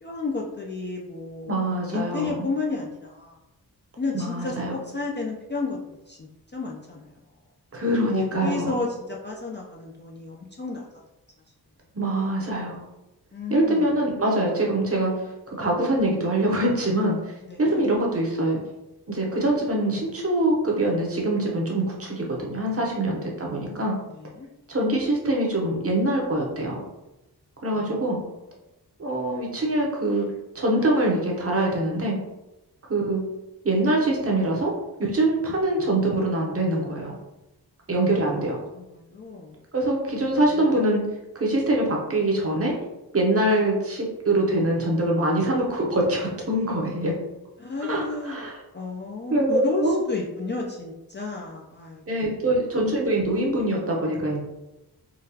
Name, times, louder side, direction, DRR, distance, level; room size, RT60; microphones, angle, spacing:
voice 1, 0.0-1.5 1.9-3.4 4.0-7.2 8.1-10.9 13.3-14.0 17.4-17.9 22.8-23.0 24.1-24.5 27.7-28.0 28.3-28.5 38.7-39.6 40.3-40.8 47.6-48.5 48.7-52.3, left 3 dB, 30° left, -2 dB, 0.4 m, -32 dB
voice 2, 1.5-2.5 4.1-4.7 7.7-8.7 11.9-12.8 13.5-15.1 15.5-18.6 19.1-24.0 24.7-26.8 27.6-28.2 29.0-30.3 30.5-32.2 32.9-33.2 33.6-34.7 35.0-37.2 37.9-38.6 39.7-41.1 41.3-42.7 43.1-47.1 47.9-48.5 49.3-50.0 52.1-54.4, right 1 dB, 35° right, -2 dB, 0.8 m, -24 dB
3.8 x 2.3 x 2.7 m, 0.96 s
wide cardioid pair, 110°, 40 cm